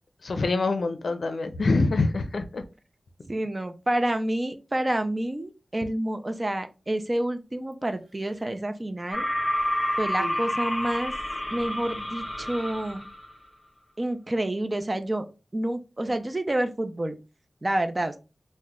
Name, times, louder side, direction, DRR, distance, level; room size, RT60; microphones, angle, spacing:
voice 1, 0.2-2.6, left 3 dB, 75° left, 0.5 m, -25 dB
voice 2, 3.3-9.3 10.0-11.1 11.5-13.1 14.0-15.2 15.5-17.2 17.6-18.2, right 1 dB, 25° right, 0.5 m, -28 dB
Human voice, 7.7-8.6 9.5-11.5 12.4-12.5, right 3 dB, 85° right, 0.9 m, -47 dB
sound 1, 9.1-13.3, left 1 dB, 30° left, 0.9 m, -29 dB
2.9 x 2.1 x 3.5 m
wide cardioid pair, 75°, 0 cm